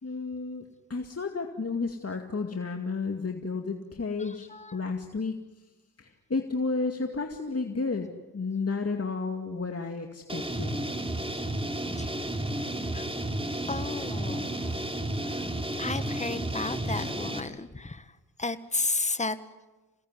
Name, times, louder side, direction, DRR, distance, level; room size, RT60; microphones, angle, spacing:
voice 1, 0.0-5.6 6.0-10.8, left 4 dB, 40° left, 4 dB, 2.3 m, -32 dB
voice 2, 4.2-4.8 12.0-12.2 12.6-13.1 13.7-19.4, left 3 dB, 20° left, 12 dB, 1.6 m, -34 dB
sound 1, 10.3-17.4, right 1 dB, 15° right, 3.2 m, -32 dB
26.5 x 18.0 x 9.8 m, 1.1 s
cardioid pair, 50°, 39 cm